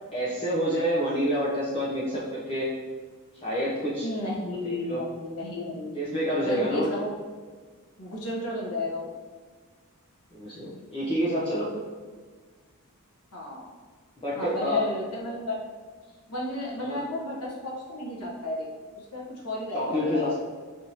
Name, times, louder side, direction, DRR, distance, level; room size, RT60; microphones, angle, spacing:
voice 1, 0.1-2.7 3.4-4.1 4.6-5.0 5.9-6.9 10.3-11.7 14.2-14.9 16.9-17.0 19.7-20.3, equal, 25° left, -8 dB, 0.6 m, -28 dB
voice 2, 4.0-5.9 6.4-7.1 8.0-9.1 13.3-13.7 14.3-15.6 16.3-18.7 19.0-20.2, left 1 dB, 90° left, -3 dB, 1.0 m, -33 dB
4.7 x 2.7 x 2.8 m, 1.5 s
head